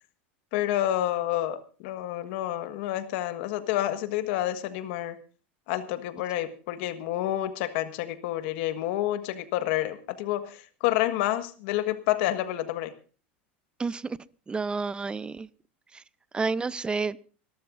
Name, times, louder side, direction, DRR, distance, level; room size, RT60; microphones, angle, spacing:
voice 1, 0.5-5.2 5.7-12.9, left 13 dB, 65° left, 9 dB, 1.5 m, -29 dB
voice 2, 13.8-14.2 14.5-15.5 15.9-16.0 16.3-17.2, right 4 dB, 15° right, 19 dB, 0.6 m, -30 dB
26.0 x 13.0 x 2.6 m, 0.37 s
supercardioid pair, 115°, 6 cm